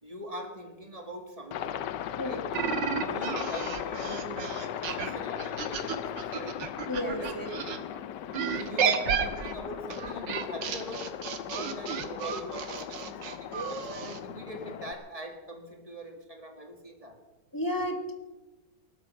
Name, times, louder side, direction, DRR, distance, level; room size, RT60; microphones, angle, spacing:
voice 1, 0.0-1.9 2.1-2.5 3.0-6.7 7.2-8.2 8.6-17.2, equal, 20° right, 1.7 m, -43 dB
Aircraft, 1.5-14.9, left 10 dB, 75° left, 1.3 m, -37 dB
sound 1, 2.5-7.8 8.3-14.2, right 7 dB, 75° right, 1.8 m, -32 dB
voice 2, 6.9-7.5 17.5-18.1, left 1 dB, 10° left, 1.5 m, -32 dB
19.0 x 12.5 x 5.6 m
omnidirectional pair, 2.0 m